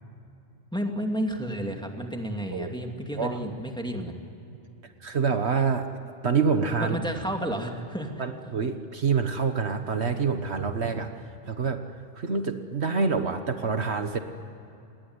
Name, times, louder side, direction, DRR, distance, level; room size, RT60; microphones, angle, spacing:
voice 1, 0.7-4.2 6.8-8.2, equal, 5° left, 2 dB, 2.4 m, -31 dB
voice 2, 4.8-5.9 6.2-7.0 8.2-11.8 12.1-14.2, right 5 dB, 60° right, 7 dB, 1.5 m, -27 dB
27.5 x 20.5 x 9.7 m, 2.8 s
omnidirectional pair, 1.3 m